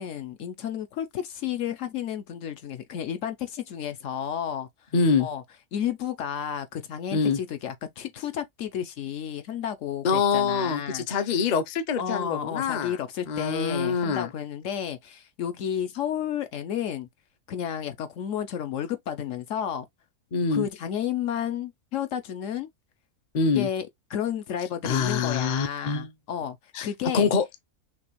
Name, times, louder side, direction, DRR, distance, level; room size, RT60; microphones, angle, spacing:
voice 1, 0.0-4.7 5.2-5.4 5.7-11.2 12.0-17.1 17.5-19.8 20.5-22.7 23.6-27.3, left 9 dB, 65° left, 0.9 m, -32 dB
voice 2, 4.9-5.3 7.1-7.4 10.0-13.0 13.3-14.3 20.3-20.7 23.3-23.7 24.8-26.1 26.7-26.9 27.1-27.6, left 5 dB, 50° left, 0.5 m, -25 dB
6.0 x 2.4 x 3.0 m
omnidirectional pair, 1.6 m